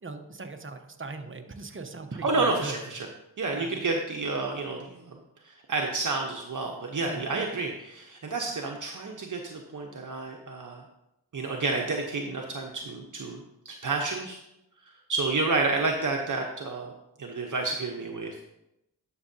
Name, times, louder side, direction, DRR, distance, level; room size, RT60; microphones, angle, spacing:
voice 1, 0.0-2.8 3.5-3.7 7.0-7.4, right 3 dB, 30° right, 6 dB, 0.9 m, -39 dB
voice 2, 2.2-3.1 3.4-5.2 5.4-10.8 11.3-14.4 14.8-16.9 17.2-18.4, right 3 dB, 50° right, 1 dB, 1.0 m, -30 dB
11.0 x 6.2 x 2.8 m, 0.86 s
cardioid pair, 60°, 38 cm